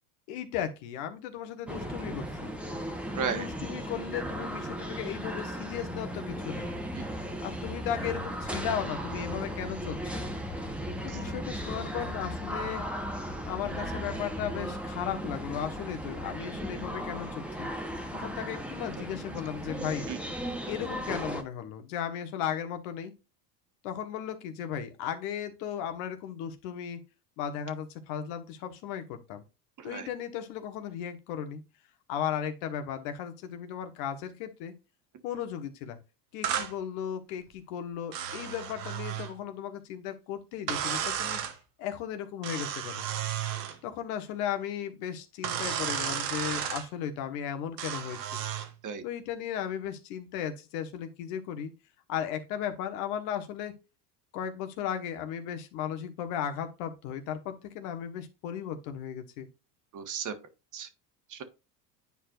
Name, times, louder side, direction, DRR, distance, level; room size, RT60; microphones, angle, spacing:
voice 1, 0.3-2.5 3.2-6.7 7.4-10.2 11.0-12.9 13.5-17.7 18.1-20.1 20.7-23.1 23.8-27.0 27.4-29.4 29.8-31.6 32.1-34.7 35.2-36.0 36.3-41.4 41.8-43.1 43.8-48.4 49.0-51.7 52.1-53.7 54.3-59.5, left 9 dB, 70° left, 1.4 m, -36 dB
sound 1, 1.7-21.4, equal, ahead, 1.1 m, -36 dB
voice 2, 3.1-3.5 7.0-7.1 11.1-11.2 20.1-20.2 29.8-30.1 48.8-49.0 59.9-60.3 60.7-60.9 61.3-61.4, right 6 dB, 40° right, 1.4 m, -34 dB
sound 2, 36.4-36.7 38.1-39.3 40.7-41.5 42.4-43.8 45.4-46.9 47.8-48.7, right 9 dB, 85° right, 1.4 m, -33 dB
9.8 x 4.7 x 2.5 m
hypercardioid pair, 90°, 48 cm